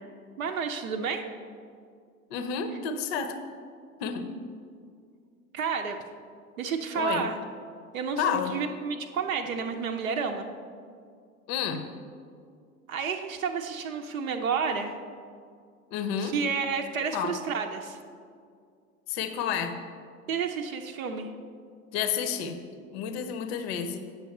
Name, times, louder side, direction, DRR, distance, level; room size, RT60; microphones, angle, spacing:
voice 1, 0.4-1.2 5.5-6.0 6.6-7.4 7.9-10.5 12.9-14.9 16.2-18.0 20.3-21.3, right 5 dB, 70° right, 5 dB, 0.6 m, -30 dB
voice 2, 2.3-3.4 4.0-4.3 6.9-7.2 8.2-8.5 11.5-11.8 15.9-16.4 17.1-17.4 19.1-19.8 21.9-22.6 22.9-24.0, left 7 dB, 45° left, 9 dB, 0.7 m, -30 dB
8.1 x 6.0 x 4.1 m, 2.2 s
figure-of-eight pair, 80°, 43 cm